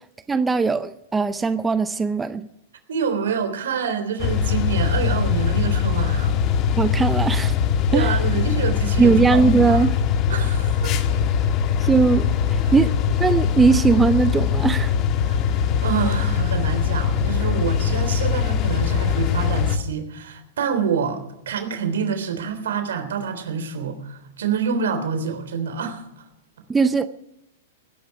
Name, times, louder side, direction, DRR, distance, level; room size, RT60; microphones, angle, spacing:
voice 1, 0.3-2.5 6.8-7.6 7.9-8.2 9.0-10.0 11.8-12.9 13.2-14.9 26.7-27.1, right 4 dB, 10° right, 12 dB, 0.6 m, -19 dB
voice 2, 2.9-6.3 7.9-9.8 10.3-11.0 12.6-12.7 15.3-26.2, right 6 dB, 80° right, 7 dB, 3.4 m, -27 dB
sound 1, 4.2-19.8, left 7 dB, 35° left, 1.5 m, -21 dB
19.0 x 11.0 x 5.9 m, 0.87 s
hypercardioid pair, 140°, 0 cm